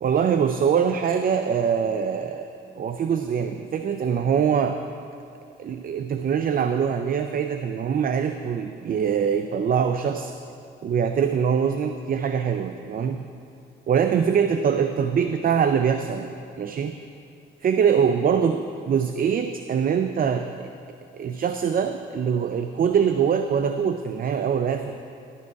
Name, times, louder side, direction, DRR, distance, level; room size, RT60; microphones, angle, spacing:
voice 1, 0.0-2.5 2.8-4.8 5.6-10.3 10.8-13.3 13.9-16.3 16.6-17.0 17.6-20.7 21.1-25.0, right 7 dB, 45° right, 8 dB, 0.5 m, -23 dB
12.5 x 11.5 x 4.7 m, 2.5 s
cardioid pair, 90°, 20 cm